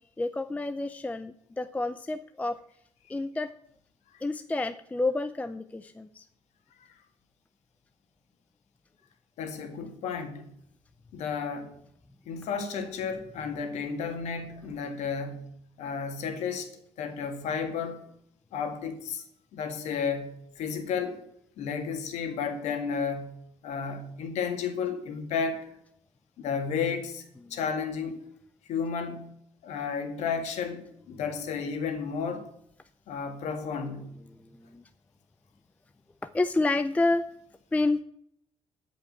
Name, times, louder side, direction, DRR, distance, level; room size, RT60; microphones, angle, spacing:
voice 1, 0.2-2.6 3.1-3.5 4.2-6.3 34.5-34.8 36.3-37.2 37.7-38.0, left 2 dB, 15° left, 11 dB, 0.4 m, -29 dB
voice 2, 9.4-10.5 11.1-11.7 12.3-15.5 15.8-16.7 17.0-18.0 18.5-19.2 19.5-21.2 21.6-23.4 23.6-25.7 26.4-28.2 28.7-29.3 29.6-32.5 33.1-34.1, left 6 dB, 90° left, 6 dB, 2.0 m, -32 dB
13.5 x 5.2 x 7.6 m, 0.72 s
cardioid pair, 120°, 11 cm